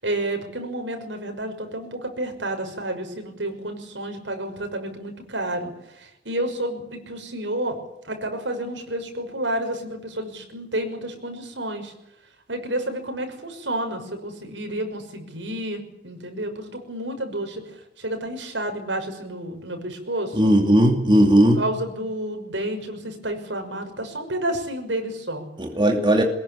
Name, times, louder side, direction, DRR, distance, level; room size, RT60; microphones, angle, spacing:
voice 1, 0.0-7.8 8.0-11.9 12.5-20.5 21.6-25.4, right 1 dB, 80° right, 5 dB, 6.2 m, -30 dB
voice 2, 20.3-21.6 25.6-26.2, right 1 dB, 25° right, 3 dB, 2.7 m, -17 dB
23.0 x 21.5 x 8.6 m, 0.82 s
head